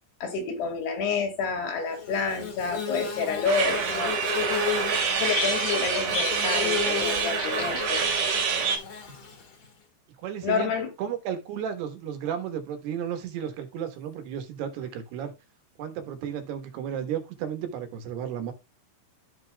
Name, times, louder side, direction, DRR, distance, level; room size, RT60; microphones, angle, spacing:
voice 1, 0.2-4.2 5.2-8.0 10.4-10.9, left 5 dB, 75° left, 4.0 m, -29 dB
Bird / Buzz, 1.9-9.6, left 5 dB, 40° left, 2.0 m, -33 dB
sound 1, 3.4-8.8, right 6 dB, 45° right, 3.0 m, -27 dB
voice 2, 10.2-10.7 11.0-15.3 15.8-18.5, right 9 dB, 75° right, 3.3 m, -33 dB
14.0 x 5.4 x 2.3 m
omnidirectional pair, 4.9 m